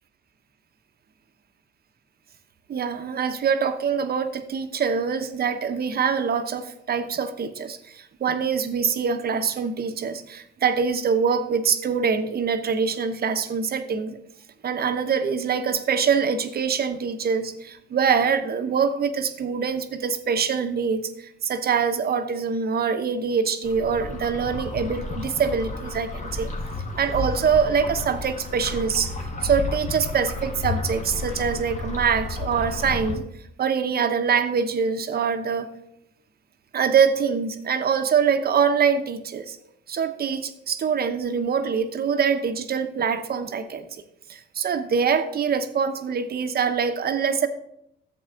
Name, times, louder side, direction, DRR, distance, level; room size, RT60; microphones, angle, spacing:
voice 1, 2.7-14.2 14.6-26.5 27.0-29.1 29.4-33.2 33.6-35.7 36.7-39.6 39.9-43.9 44.3-47.5, right 6 dB, 50° right, 8 dB, 0.9 m, -24 dB
sound 1, 23.6-33.2, left 3 dB, 40° left, 1.7 m, -32 dB
11.0 x 7.8 x 3.8 m, 0.78 s
cardioid pair, 90°, 20 cm